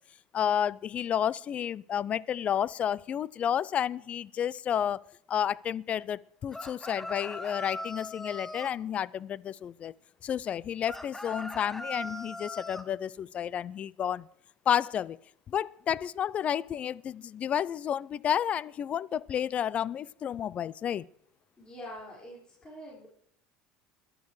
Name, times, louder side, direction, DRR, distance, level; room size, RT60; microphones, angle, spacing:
voice 1, 0.3-9.9 10.2-14.3 14.7-15.2 15.5-21.1, left 9 dB, 40° left, 0.4 m, -31 dB
sound 1, 6.5-8.7 10.8-12.9, left 1 dB, 10° left, 1.0 m, -40 dB
voice 2, 21.6-23.1, equal, 25° left, 5.2 m, -45 dB
21.5 x 12.0 x 3.2 m
hypercardioid pair, 85°, 3 cm